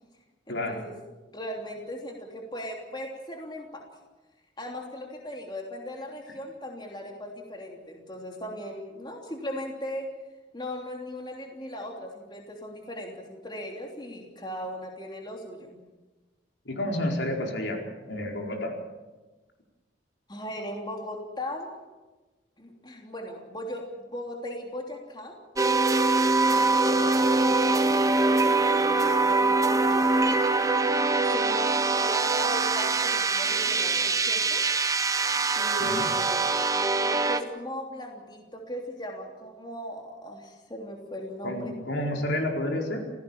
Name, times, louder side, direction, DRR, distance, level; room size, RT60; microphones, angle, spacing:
voice 1, 0.5-0.9 1.3-3.9 4.6-10.0 10.5-15.8 20.3-21.7 22.6-25.4 26.5-30.2 31.2-34.7 35.5-41.7, equal, 25° left, 1 dB, 3.1 m, -38 dB
voice 2, 16.7-17.8 18.1-18.7 35.8-36.0 41.4-43.0, left 1 dB, 75° left, 1 dB, 4.6 m, -30 dB
sound 1, 25.6-37.4, right 3 dB, 20° right, 0.9 m, -23 dB
27.5 x 17.5 x 7.3 m, 1.2 s
head